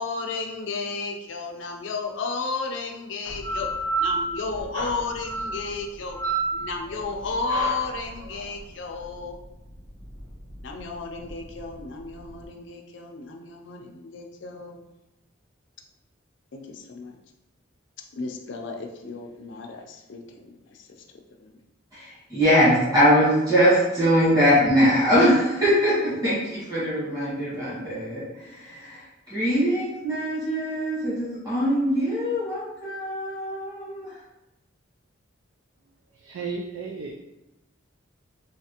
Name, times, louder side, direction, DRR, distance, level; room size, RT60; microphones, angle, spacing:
voice 1, 0.0-3.7 4.0-6.2 6.5-9.4 10.6-14.8 16.5-17.2 18.1-21.0 21.4-21.5, left 4 dB, 65° left, 0.4 m, -33 dB
sound 1, 3.3-12.4, right 3 dB, 70° right, 1.1 m, -31 dB
voice 2, 21.9-34.2, equal, 20° right, 1.3 m, -22 dB
voice 3, 36.1-37.1, right 4 dB, 90° right, 0.4 m, -34 dB
3.2 x 2.8 x 2.9 m
head